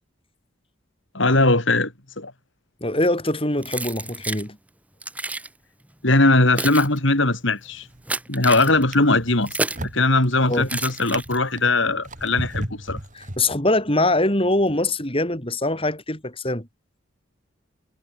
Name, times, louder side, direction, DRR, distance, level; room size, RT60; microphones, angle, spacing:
voice 1, 1.1-2.3 6.0-7.9 8.3-9.6 9.8-13.0, left 2 dB, 65° left, 4.6 m, -20 dB
voice 2, 2.8-4.6 10.5-10.7 13.1-16.7, left 2 dB, 25° left, 4.5 m, -23 dB
Keys jangling, 3.6-4.5 5.0-5.5 6.2-9.9 10.6-11.6, right 2 dB, 5° right, 2.1 m, -30 dB
Drawer open or close, 7.7-8.2 8.7-13.9 14.6-14.8, right 1 dB, 40° right, 5.5 m, -36 dB
head